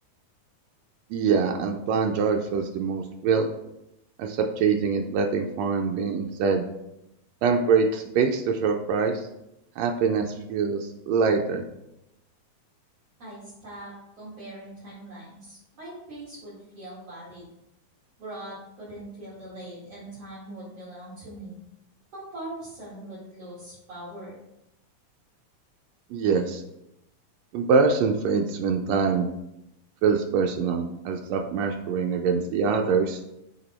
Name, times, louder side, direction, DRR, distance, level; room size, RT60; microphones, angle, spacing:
voice 1, 1.1-3.5 4.2-6.6 7.4-9.3 9.8-11.6 26.1-26.6 27.5-29.3 30.0-33.2, right 5 dB, 85° right, 3 dB, 1.5 m, -24 dB
voice 2, 13.2-17.5 18.2-21.6 22.1-24.4, right 1 dB, 50° right, -10 dB, 2.8 m, -41 dB
6.8 x 3.6 x 4.2 m, 0.86 s
omnidirectional pair, 3.6 m